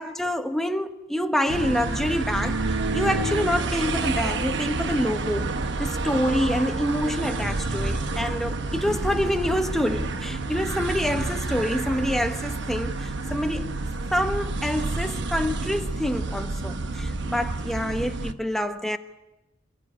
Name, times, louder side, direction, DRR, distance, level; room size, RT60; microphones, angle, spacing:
voice 1, 0.0-13.7 14.1-19.0, equal, ahead, 1.1 m, -27 dB
sound 1, 1.5-18.3, right 3 dB, 55° right, 1.1 m, -29 dB
27.0 x 14.0 x 9.6 m
head